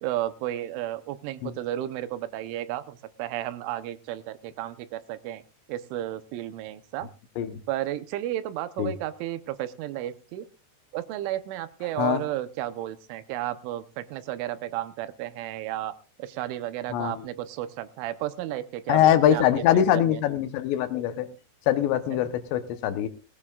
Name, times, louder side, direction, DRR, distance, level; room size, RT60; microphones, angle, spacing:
voice 1, 0.0-5.4 5.7-7.1 7.7-10.5 10.9-15.9 16.2-20.2, right 13 dB, 85° right, 12 dB, 3.3 m, -33 dB
voice 2, 18.9-21.3 21.7-23.1, left 11 dB, 75° left, 10 dB, 3.0 m, -23 dB
20.0 x 17.0 x 2.4 m, 0.32 s
omnidirectional pair, 5.5 m